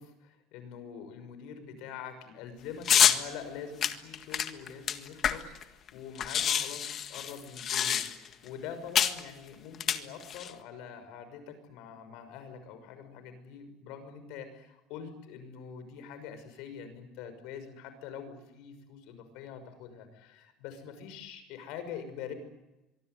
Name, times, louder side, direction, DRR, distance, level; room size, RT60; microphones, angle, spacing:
voice 1, 0.0-22.3, left 7 dB, 75° left, 10 dB, 6.2 m, -45 dB
sound 1, 2.9-3.2 3.8-5.6 5.9-6.0 6.2-8.3 9.0-9.2 9.7-10.5, left 9 dB, 40° left, 1.7 m, -26 dB
24.0 x 24.0 x 9.6 m, 0.99 s
cardioid pair, 145°, 0 cm